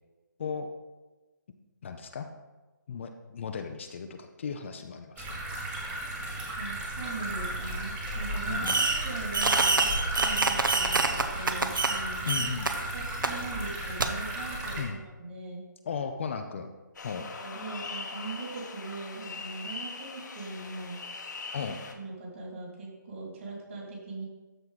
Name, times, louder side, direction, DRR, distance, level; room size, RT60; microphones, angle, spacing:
voice 1, 1.8-2.3 2.9-5.7 8.5-8.8 12.3-12.7 14.8-14.9 15.9-16.7 17.0-17.3 21.5-21.8, left 6 dB, 40° left, 6 dB, 0.6 m, -36 dB
sound 1, 5.2-14.8, right 1 dB, 10° right, 1.1 m, -34 dB
voice 2, 6.6-12.5 12.9-15.6 17.3-21.0 21.9-24.3, right 3 dB, 40° right, -2 dB, 2.8 m, -40 dB
Fireworks, 8.6-9.1 9.3-12.0 12.3-12.7 13.2-13.3 14.0-14.1, right 3 dB, 85° right, 0.9 m, -26 dB
sound 2, 16.9-21.9, left 4 dB, 65° left, 1.2 m, -41 dB
13.0 x 4.4 x 4.1 m, 1.2 s
hypercardioid pair, 160°, 11 cm